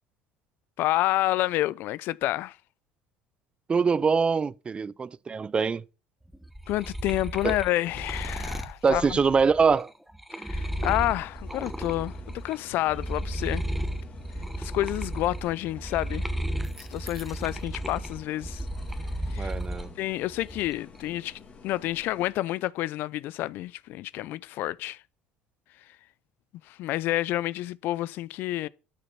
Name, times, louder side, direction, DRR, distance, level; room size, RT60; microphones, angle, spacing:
voice 1, 0.8-2.6 6.7-9.0 10.4-13.6 14.6-16.3 16.8-18.6 19.3-19.5 20.0-25.0 26.7-28.7, left 16 dB, 65° left, 0.5 m, -29 dB
voice 2, 3.7-5.8 7.4-7.6 8.8-9.9 19.4-19.9, right 5 dB, 30° right, 0.5 m, -24 dB
sound 1, 6.3-12.6 12.9-19.9 20.3-21.0, right 1 dB, 5° right, 1.1 m, -34 dB
sound 2, 10.5-22.3, left 5 dB, 40° left, 2.9 m, -50 dB
13.0 x 6.8 x 5.6 m
hypercardioid pair, 75°, 4 cm